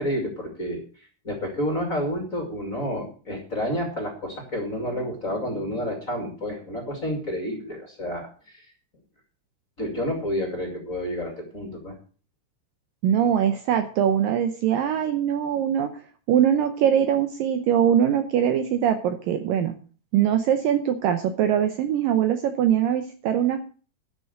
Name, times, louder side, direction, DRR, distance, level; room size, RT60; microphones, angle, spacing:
voice 1, 0.0-8.7 9.8-11.9, equal, 25° left, 2 dB, 2.1 m, -30 dB
voice 2, 13.0-15.9 16.3-19.8 20.1-23.7, right 9 dB, 75° right, 8 dB, 2.2 m, -22 dB
12.0 x 6.1 x 7.9 m, 0.40 s
omnidirectional pair, 4.7 m